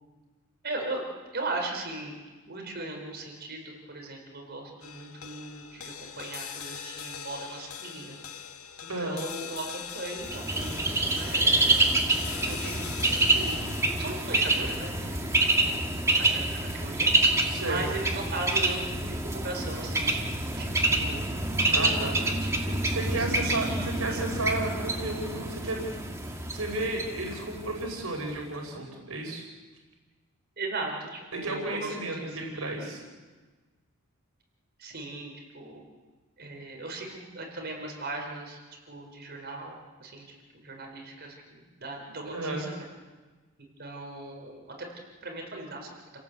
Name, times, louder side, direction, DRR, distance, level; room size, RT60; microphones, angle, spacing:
voice 1, 0.6-1.0 1.3-2.2 2.5-8.2 9.0-11.9 12.3-12.9 13.3-13.6 13.9-15.8 16.0-17.3 17.6-21.2 21.7-24.2 30.6-33.0 34.8-35.8 36.4-38.6 38.9-42.9 43.8-44.9 45.2-46.0, right 2 dB, 45° right, 1 dB, 4.8 m, -38 dB
sound 1, 4.8-17.3, left 7 dB, 80° left, 1.9 m, -42 dB
Bird, 10.2-28.0, right 2 dB, 15° right, 2.4 m, -27 dB
voice 2, 17.5-17.8 21.7-22.1 22.9-25.9 26.5-29.5 31.3-33.0 42.3-42.7, right 2 dB, 85° right, 2 dB, 5.0 m, -33 dB
29.5 x 17.5 x 8.2 m, 1.3 s
head